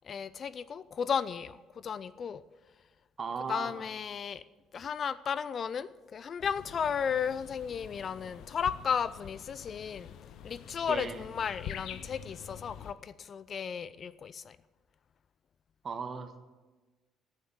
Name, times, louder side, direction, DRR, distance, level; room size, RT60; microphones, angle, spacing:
voice 1, 0.0-2.4 3.5-4.4 4.7-10.1 10.4-14.6, left 7 dB, 45° left, 18 dB, 0.5 m, -34 dB
voice 2, 3.2-3.8 10.9-11.2 15.8-16.4, right 5 dB, 40° right, 7 dB, 1.6 m, -37 dB
sound 1, 6.4-12.9, left 9 dB, 65° left, 0.8 m, -46 dB
15.0 x 7.3 x 7.1 m, 1.2 s
hypercardioid pair, 60°, 0 cm